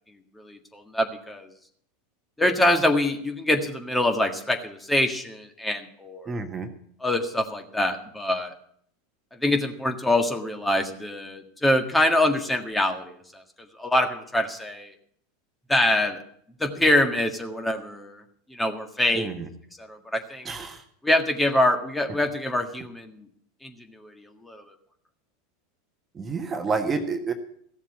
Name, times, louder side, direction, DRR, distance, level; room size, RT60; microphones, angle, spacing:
voice 1, 0.4-1.5 2.4-6.3 7.0-8.5 9.4-13.2 13.8-14.9 15.7-16.2 16.6-18.2 18.5-19.3 19.8-20.5 21.0-23.2 23.6-23.7 24.0-24.1 24.4-24.6, left 1 dB, 10° left, 4 dB, 1.7 m, -24 dB
voice 2, 6.3-6.7 19.1-19.5 20.4-20.8 26.1-27.3, right 4 dB, 25° right, 6 dB, 1.5 m, -29 dB
15.0 x 7.2 x 8.6 m, 0.64 s
figure-of-eight pair, 80°, 0 cm